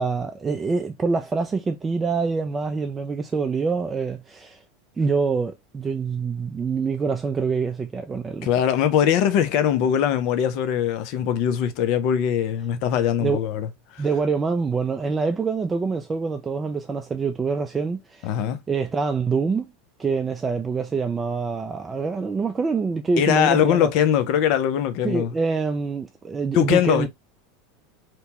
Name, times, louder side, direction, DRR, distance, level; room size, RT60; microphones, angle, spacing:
voice 1, 0.0-4.6 5.0-8.5 13.2-13.4 14.0-18.3 18.7-19.7 20.0-23.9 25.0-27.1, right 4 dB, 20° right, 0.3 m, -25 dB
voice 2, 8.4-14.0 18.2-18.6 23.2-25.3 26.5-27.1, left 9 dB, 60° left, 0.5 m, -21 dB
2.9 x 2.2 x 2.7 m
hypercardioid pair, 95°, 0 cm